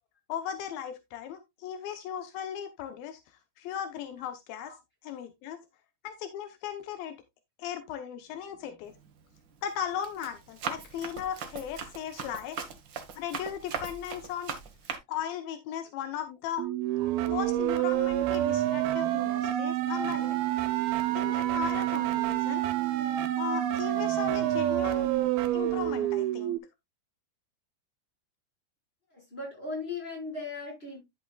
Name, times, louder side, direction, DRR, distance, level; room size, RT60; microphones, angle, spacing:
voice 1, 0.3-3.2 3.6-4.7 5.0-5.6 6.0-7.2 7.6-8.9 9.6-12.6 13.2-14.5 15.1-16.6 17.3-20.4 21.2-22.7 23.4-25.1 25.5-26.6, left 9 dB, 80° left, 2.7 m, -37 dB
Run, 8.9-9.2 9.7-15.0, right 6 dB, 70° right, 1.1 m, -39 dB
sound 1, 16.6-26.6, right 14 dB, 85° right, 2.8 m, -28 dB
voice 2, 29.1-31.0, left 3 dB, 15° left, 5.4 m, -38 dB
11.0 x 7.8 x 2.3 m
omnidirectional pair, 4.2 m